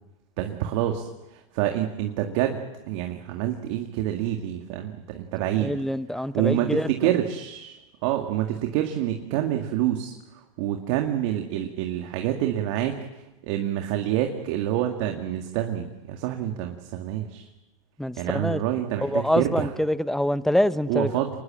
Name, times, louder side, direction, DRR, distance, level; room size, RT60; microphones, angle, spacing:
voice 1, 0.4-5.7 6.3-7.8 8.0-17.5 18.2-19.1 19.3-19.7 20.9-21.3, right 12 dB, 60° right, 2.1 m, -27 dB
voice 2, 5.6-7.1 18.0-18.6 19.0-21.2, left 1 dB, ahead, 0.7 m, -25 dB
25.5 x 20.5 x 7.6 m
hypercardioid pair, 110°, 18 cm